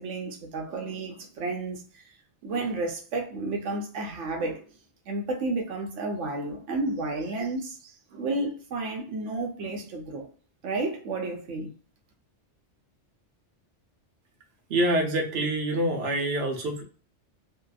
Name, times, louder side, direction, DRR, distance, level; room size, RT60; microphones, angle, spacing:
voice 1, 0.0-2.1 2.4-4.6 5.1-10.3 10.6-11.7, right 2 dB, 85° right, 1.0 m, -32 dB
voice 2, 14.7-16.8, right 1 dB, 65° right, 1.0 m, -26 dB
2.7 x 2.2 x 2.3 m
omnidirectional pair, 1.2 m